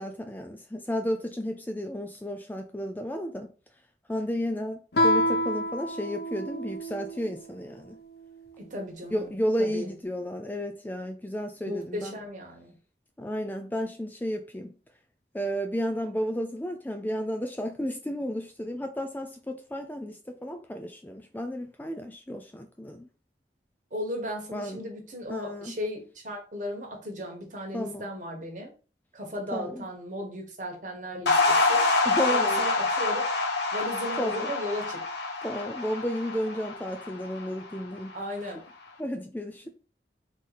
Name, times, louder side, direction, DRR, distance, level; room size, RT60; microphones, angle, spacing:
voice 1, 0.0-3.5 4.1-8.0 9.1-12.1 13.2-14.7 15.3-23.1 24.5-24.9 25.3-25.7 27.7-28.1 29.5-29.8 32.0-32.6 34.2-34.5 35.4-38.1 39.0-39.7, equal, 10° left, 0.4 m, -32 dB
Guitar, 4.9-7.4, equal, 65° left, 0.8 m, -27 dB
voice 2, 8.6-9.3 9.6-9.9 11.6-12.7 23.9-28.7 29.1-31.8 32.3-33.3 33.7-35.0 38.1-38.6, equal, 45° right, 1.5 m, -36 dB
sound 1, 31.3-37.7, left 3 dB, 85° left, 1.2 m, -26 dB
3.9 x 3.1 x 4.1 m
head